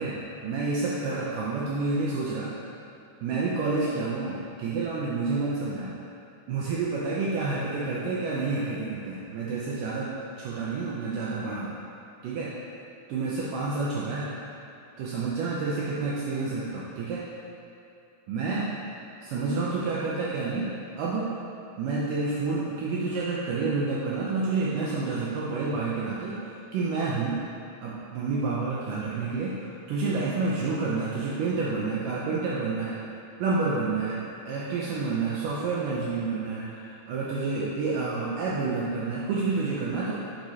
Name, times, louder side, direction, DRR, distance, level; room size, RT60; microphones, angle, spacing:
voice 1, 0.0-2.5 3.2-5.9 6.5-11.7 12.2-12.6 13.1-14.3 15.0-17.3 18.3-18.7 19.2-20.7 21.0-21.3 21.8-27.4 27.8-33.0 33.4-40.1, right 3 dB, 85° right, -6 dB, 1.9 m, -29 dB
9.2 x 4.9 x 2.8 m, 2.7 s
omnidirectional pair, 4.6 m